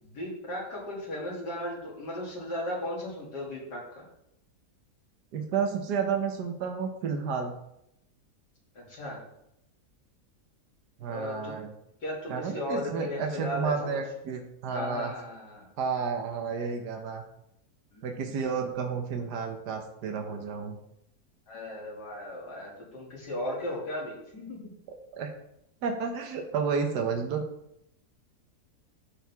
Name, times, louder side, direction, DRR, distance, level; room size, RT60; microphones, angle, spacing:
voice 1, 0.0-4.0 8.7-9.2 11.1-11.6 12.0-14.0 14.7-15.7 17.9-18.4 21.5-24.7, left 1 dB, 80° left, -4 dB, 3.1 m, -36 dB
voice 2, 5.3-7.5 11.0-11.7 12.3-15.1 15.8-17.2 18.0-20.8 25.1-25.3 25.8-27.4, right 5 dB, 80° right, 4 dB, 1.6 m, -31 dB
13.0 x 4.6 x 3.5 m, 0.79 s
omnidirectional pair, 1.7 m